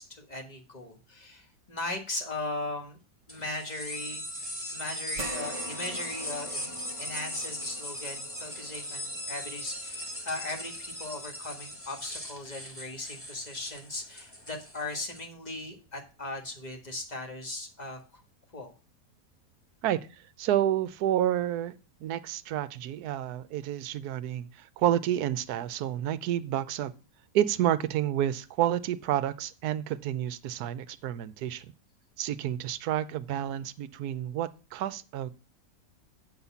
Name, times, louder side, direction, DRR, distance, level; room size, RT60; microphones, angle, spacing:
voice 1, 0.0-3.0 3.3-4.2 4.7-18.2 18.5-18.7, left 2 dB, 25° left, 1.6 m, -38 dB
sound 1, 3.3-15.2, left 1 dB, 10° left, 1.4 m, -39 dB
sound 2, 5.1-13.8 14.2-14.3 15.8-15.9, right 2 dB, 45° right, 1.3 m, -46 dB
voice 2, 20.4-21.7 22.0-26.9 27.3-31.7 32.2-35.3, right 11 dB, 70° right, 1.1 m, -29 dB
8.7 x 4.1 x 6.9 m
omnidirectional pair, 1.9 m